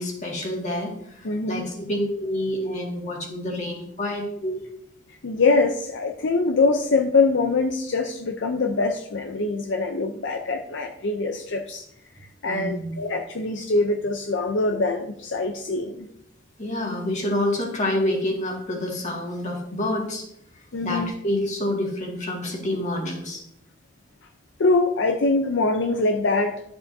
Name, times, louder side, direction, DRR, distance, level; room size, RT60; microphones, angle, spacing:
voice 1, 0.0-4.6 12.5-13.1 16.6-20.3 20.6-23.4, left 1 dB, 40° left, 0 dB, 2.0 m, -28 dB
voice 2, 1.2-1.6 5.2-11.8 12.4-16.1 20.7-21.1 24.6-26.6, left 3 dB, 70° left, 5 dB, 0.6 m, -23 dB
11.5 x 7.0 x 2.7 m, 0.73 s
head